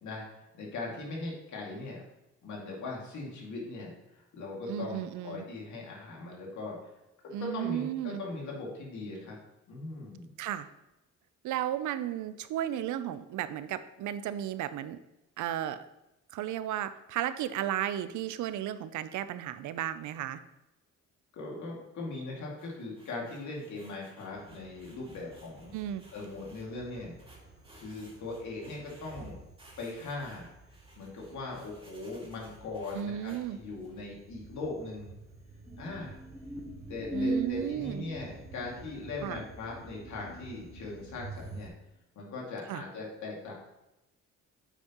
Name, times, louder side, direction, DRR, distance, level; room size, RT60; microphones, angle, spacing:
voice 1, 0.5-2.0 2.4-6.8 7.4-9.4 9.7-10.3 21.3-25.7 26.1-27.1 27.8-29.4 29.8-30.5 31.0-35.1 35.8-36.2 36.9-41.7 42.2-43.5, left 3 dB, 70° left, -2 dB, 2.2 m, -40 dB
voice 2, 4.7-5.5 7.3-8.2 10.4-10.7 11.4-15.0 15.4-15.8 16.3-20.4 25.7-26.0 32.9-33.6 37.1-38.0 39.2-39.4 42.7-42.8, right 11 dB, 75° right, 13 dB, 0.5 m, -34 dB
sound 1, 22.6-26.6 27.2-29.3 29.6-34.0, right 1 dB, 15° right, 2.2 m, -59 dB
sound 2, 24.3-41.7, right 3 dB, 45° right, 2.3 m, -51 dB
sound 3, 35.7-41.4, right 2 dB, 10° left, 1.0 m, -39 dB
8.1 x 5.8 x 3.0 m, 0.94 s
cardioid pair, 90°, 30 cm